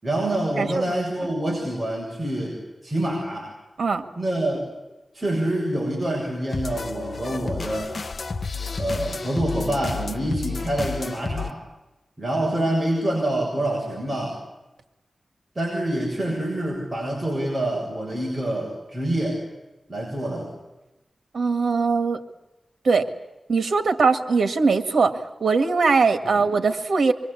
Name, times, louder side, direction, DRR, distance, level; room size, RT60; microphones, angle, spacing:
voice 1, 0.0-3.5 4.2-4.7 5.1-7.9 8.8-11.6 12.2-14.4 15.6-19.4 19.9-20.5 26.2-26.4, right 1 dB, 25° right, -2 dB, 7.5 m, -26 dB
sound 1, 6.5-11.5, left 4 dB, 55° left, 0.9 m, -31 dB
voice 2, 21.3-22.2 22.8-23.1 23.5-27.1, right 4 dB, 85° right, 7 dB, 1.9 m, -21 dB
26.0 x 23.5 x 8.5 m, 1.0 s
wide cardioid pair, 95°, 0 cm